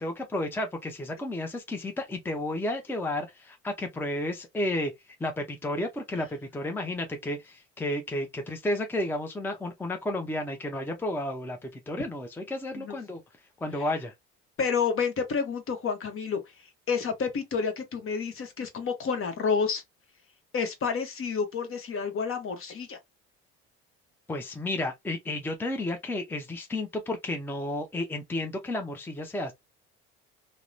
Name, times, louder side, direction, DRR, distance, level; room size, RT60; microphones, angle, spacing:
voice 1, 0.0-13.2 13.6-14.1 24.3-29.5, left 1 dB, 5° left, 0.5 m, -32 dB
voice 2, 14.6-16.4 16.9-19.8 20.5-23.0, left 5 dB, 45° left, 1.0 m, -29 dB
2.8 x 2.1 x 2.5 m
supercardioid pair, 75°, 31 cm